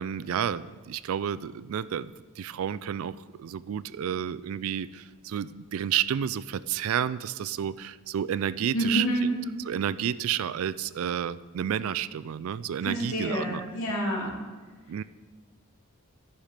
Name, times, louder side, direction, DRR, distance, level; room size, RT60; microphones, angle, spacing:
voice 1, 0.0-9.3 9.7-13.6 14.9-15.0, right 9 dB, 65° right, 17 dB, 0.3 m, -31 dB
voice 2, 8.7-9.4 12.8-14.3, right 1 dB, 70° left, -3 dB, 2.5 m, -28 dB
13.0 x 5.8 x 5.0 m, 1.3 s
head